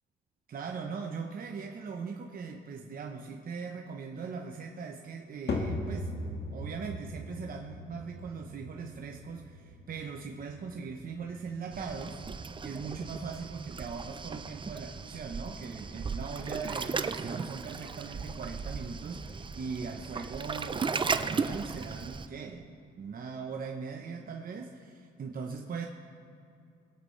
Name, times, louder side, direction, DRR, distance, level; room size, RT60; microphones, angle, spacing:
voice 1, 0.5-12.2 12.6-25.9, right 5 dB, 45° right, 2 dB, 0.9 m, -40 dB
sound 1, 5.5-21.9, left 2 dB, 60° left, 1.9 m, -43 dB
Waves surf, 11.7-22.3, right 5 dB, 25° right, 0.5 m, -36 dB
21.5 x 8.4 x 3.2 m, 2.5 s
cardioid pair, 90°, 20 cm